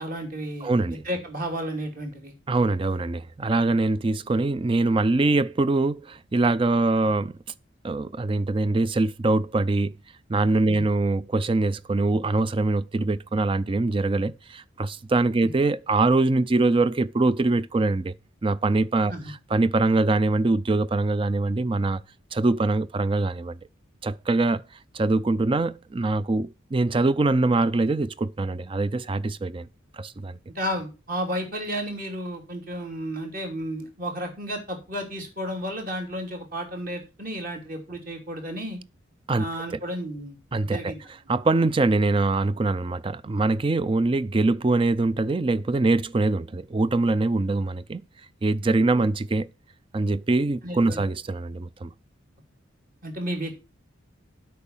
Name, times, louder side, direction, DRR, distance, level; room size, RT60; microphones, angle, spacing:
voice 1, 0.0-2.3 10.7-10.8 15.4-15.5 19.1-19.3 30.5-38.8 39.4-40.4 40.6-41.0 50.6-51.0 53.0-53.6, equal, 45° right, 3.1 m, -32 dB
voice 2, 0.6-1.0 2.5-7.3 7.8-9.9 10.3-18.1 18.4-22.0 22.3-23.6 24.0-24.6 24.9-29.7 29.9-30.4 39.3-39.4 40.5-40.9 41.3-48.0 48.4-49.5 49.9-51.9, right 2 dB, 25° right, 0.4 m, -23 dB
8.5 x 5.4 x 7.2 m
head